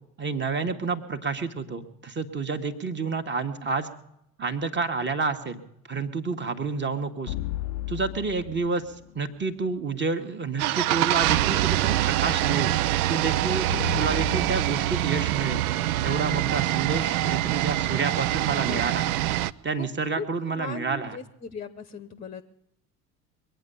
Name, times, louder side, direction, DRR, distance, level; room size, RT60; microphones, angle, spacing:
voice 1, 0.2-3.9 4.4-5.6 5.9-7.3 7.9-12.7 13.1-13.7 13.9-15.6 16.0-19.0 19.6-21.2, right 4 dB, 25° right, 7 dB, 1.6 m, -29 dB
sound 1, 7.3-9.4 13.7-16.9, left 16 dB, 50° left, 0.5 m, -36 dB
sound 2, 10.6-19.5, right 14 dB, 65° right, 0.6 m, -25 dB
voice 2, 13.4-13.7 16.5-17.2 18.6-18.8 19.8-19.9 20.1-20.2 20.5-22.4, left 5 dB, 15° left, 10 dB, 0.9 m, -39 dB
22.5 x 9.1 x 7.0 m, 0.79 s
figure-of-eight pair, 65°, 46 cm